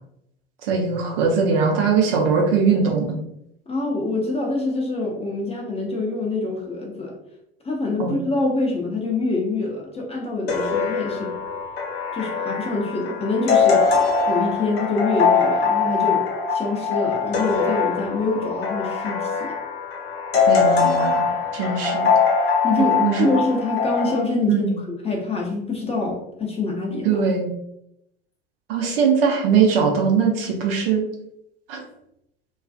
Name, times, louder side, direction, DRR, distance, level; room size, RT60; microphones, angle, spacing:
voice 1, 0.6-3.2 8.0-8.2 20.5-22.1 22.8-23.3 24.5-24.8 27.0-27.5 28.7-31.0 31.7-31.8, right 5 dB, 65° right, 1 dB, 0.7 m, -21 dB
voice 2, 3.7-7.1 7.6-11.3 12.1-13.8 14.3-16.2 16.5-19.5 22.6-24.7 25.0-27.2, left 3 dB, 20° left, 0 dB, 0.6 m, -25 dB
sound 1, 10.5-24.2, left 5 dB, 75° left, 0.6 m, -22 dB
2.4 x 2.3 x 2.3 m, 0.80 s
figure-of-eight pair, 70°, 31 cm